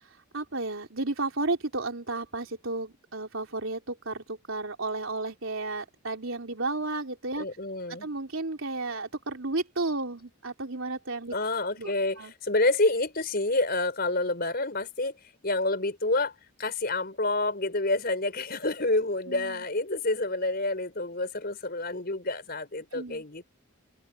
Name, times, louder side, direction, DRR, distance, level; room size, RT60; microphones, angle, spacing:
voice 1, 0.3-7.5 7.9-11.3 11.8-12.3 19.3-19.6 22.9-23.2, right 2 dB, 75° right, 3.5 m, -33 dB
voice 2, 7.4-8.1 11.3-15.2 15.4-23.5, left 2 dB, 45° left, 5.0 m, -28 dB
open air
head